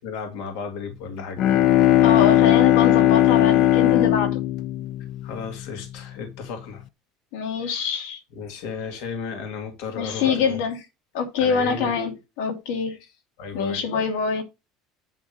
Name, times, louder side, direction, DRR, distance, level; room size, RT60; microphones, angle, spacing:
voice 1, 0.0-1.4 5.2-6.8 7.6-7.8 8.3-10.8 11.4-11.9 13.4-13.8, left 5 dB, 70° left, 2.3 m, -34 dB
Bowed string instrument, 1.2-5.9, left 13 dB, 50° left, 0.5 m, -18 dB
voice 2, 2.0-4.4 7.3-8.2 10.0-10.8 11.1-13.0 13.5-14.4, left 6 dB, 90° left, 2.7 m, -25 dB
10.0 x 3.6 x 6.4 m
cardioid pair, 160°, 0 cm